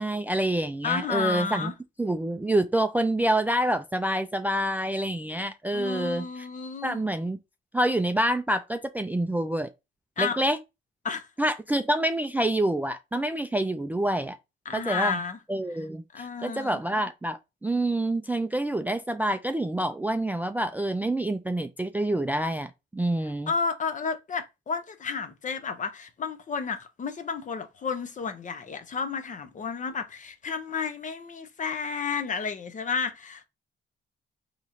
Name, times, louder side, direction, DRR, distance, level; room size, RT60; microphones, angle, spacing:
voice 1, 0.0-1.7 2.0-6.5 6.8-7.4 7.7-9.7 10.2-10.6 11.4-14.4 14.7-15.2 15.5-23.5, right 1 dB, 10° right, 0.3 m, -27 dB
voice 2, 0.8-1.7 5.7-7.0 10.2-10.4 11.0-11.3 14.7-15.4 16.1-16.8 23.5-33.5, left 5 dB, 40° left, 0.6 m, -31 dB
4.1 x 2.9 x 2.5 m
cardioid pair, 90°, 20 cm